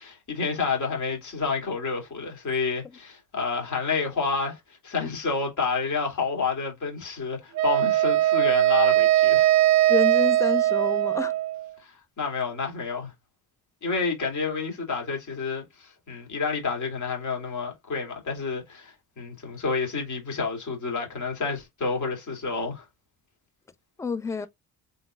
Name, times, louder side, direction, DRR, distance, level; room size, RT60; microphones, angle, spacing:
voice 1, 0.0-9.5 11.8-13.1 13.8-22.8, left 4 dB, 55° left, 2.4 m, -29 dB
Wind instrument woodwind instrument, 7.6-11.7, right 14 dB, 50° right, 0.5 m, -20 dB
voice 2, 9.9-11.3 24.0-24.5, left 5 dB, 10° left, 0.3 m, -28 dB
3.9 x 3.8 x 2.3 m
cardioid pair, 95°, 36 cm